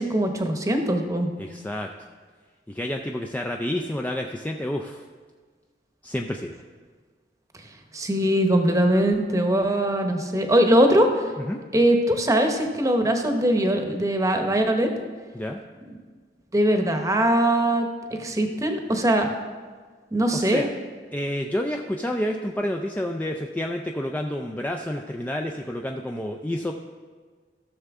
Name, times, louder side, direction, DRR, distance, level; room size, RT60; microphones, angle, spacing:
voice 1, 0.0-1.3 7.9-11.3 11.7-14.9 16.5-17.9 18.2-19.3 20.1-20.6, right 1 dB, 20° right, 5 dB, 0.9 m, -21 dB
voice 2, 1.4-1.9 2.7-5.0 6.0-6.5 11.4-11.6 15.3-15.6 20.3-20.7 21.1-26.7, left 1 dB, 10° left, 2 dB, 0.4 m, -29 dB
14.5 x 6.6 x 3.6 m, 1.5 s
head